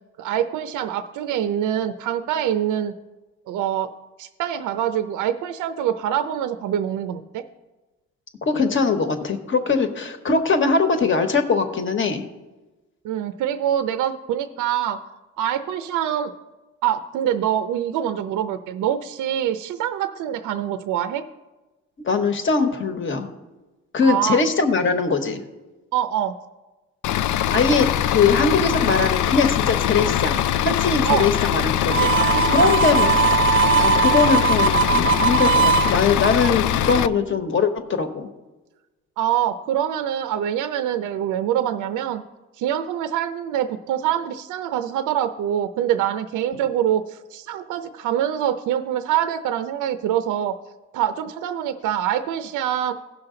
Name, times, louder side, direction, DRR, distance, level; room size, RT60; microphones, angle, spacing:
voice 1, 0.2-2.9 3.5-3.9 4.2-7.4 13.0-15.0 15.4-16.3 16.8-21.2 24.0-24.4 25.9-26.3 31.0-31.3 31.9-32.8 39.2-42.2 42.6-50.5 50.9-52.9, right 10 dB, 85° right, 10 dB, 0.6 m, -25 dB
voice 2, 8.4-12.2 22.0-23.3 23.9-25.4 27.5-32.1 32.5-33.1 33.8-37.7 38.0-38.3, left 4 dB, 40° left, 7 dB, 1.2 m, -21 dB
Bus / Idling, 27.0-37.1, left 11 dB, 75° left, 0.5 m, -22 dB
Harmonica, 31.9-35.9, right 6 dB, 40° right, 0.6 m, -19 dB
16.5 x 5.8 x 3.8 m, 1.1 s
cardioid pair, 90°, 30 cm